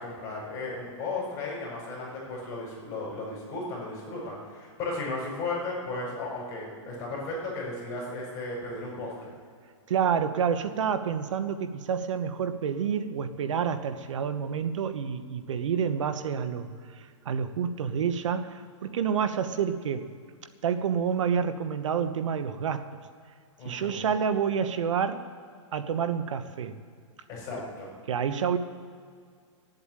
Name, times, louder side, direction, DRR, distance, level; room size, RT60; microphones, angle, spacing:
voice 1, 0.0-9.3 23.6-24.1 27.3-27.9, left 2 dB, 20° left, -4 dB, 5.0 m, -35 dB
voice 2, 9.9-20.1 20.6-22.9 23.6-25.3 25.7-26.7 28.1-28.6, right 7 dB, 70° right, 10 dB, 1.1 m, -28 dB
16.5 x 7.9 x 8.9 m, 2.1 s
hypercardioid pair, 170°, 16 cm